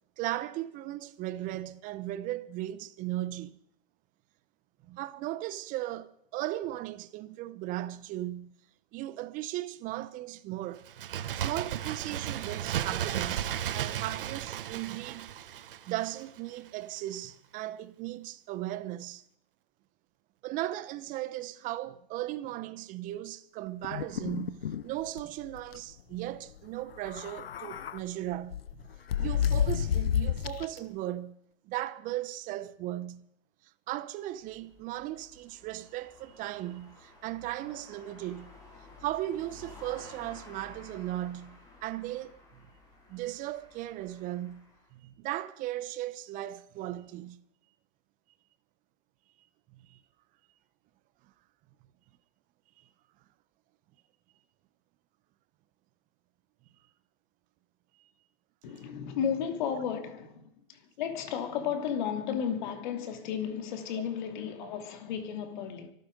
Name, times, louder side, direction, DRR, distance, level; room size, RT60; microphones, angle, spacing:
voice 1, 0.2-3.5 4.8-8.5 8.9-10.9 11.3-15.3 15.8-19.2 20.4-28.8 29.2-31.4 31.6-33.3 33.9-38.5 39.0-42.4 43.1-44.7 44.9-47.4 49.9-50.0 58.0-58.1 64.6-64.7, right 15 dB, 30° right, 0.8 m, -37 dB
Bird, 10.8-16.4 16.7-16.8, right 10 dB, 65° right, 1.1 m, -34 dB
sound 1, 23.8-24.8 25.2-25.3 25.6-25.8 27.0-28.0 28.5-30.8, left 9 dB, 85° left, 0.8 m, -30 dB
sound 2, 34.3-44.9, left 2 dB, 15° left, 6.2 m, -53 dB
voice 2, 58.6-65.9, left 8 dB, 55° left, 2.8 m, -34 dB
24.5 x 9.4 x 5.3 m
hypercardioid pair, 125°, 29 cm